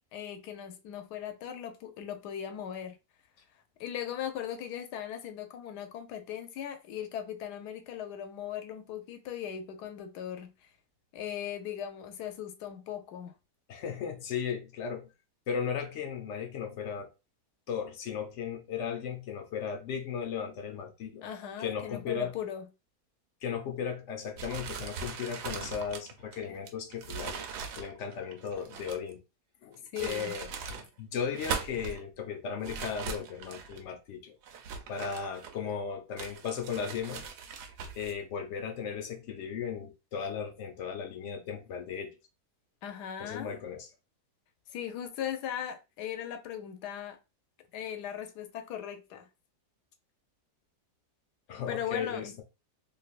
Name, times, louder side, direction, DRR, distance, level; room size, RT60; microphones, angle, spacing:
voice 1, 0.1-3.0 3.8-10.5 11.1-13.3 21.2-22.7 29.9-30.3 42.8-43.5 44.7-47.2 47.7-49.3 51.7-52.3, left 9 dB, 90° left, 1.2 m, -38 dB
voice 2, 13.7-15.1 15.5-17.1 17.7-21.3 21.6-22.3 23.4-27.4 27.8-29.2 29.6-34.4 34.9-37.3 37.9-42.2 43.2-43.9 51.5-52.3, left 7 dB, 65° left, 0.8 m, -36 dB
sound 1, 24.4-29.1 29.7-30.9 31.2-32.0 32.6-33.8 34.4-35.7 36.2-38.1, right 6 dB, 85° right, 1.2 m, -40 dB
3.3 x 2.6 x 2.4 m
omnidirectional pair, 1.7 m